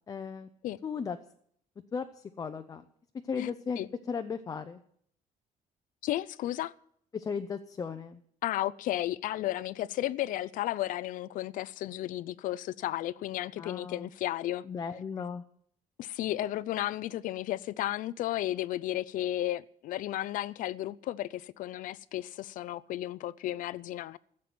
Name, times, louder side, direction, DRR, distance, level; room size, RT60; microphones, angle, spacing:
voice 1, 0.1-0.5 0.8-1.2 1.9-2.8 3.2-3.8 4.1-4.8 7.1-8.2 13.6-14.1 14.6-15.4, left 6 dB, 25° left, 0.6 m, -36 dB
voice 2, 6.0-6.7 8.4-14.6 16.0-24.2, left 14 dB, 65° left, 0.5 m, -33 dB
14.5 x 7.6 x 9.4 m
cardioid pair, 175°, 15 cm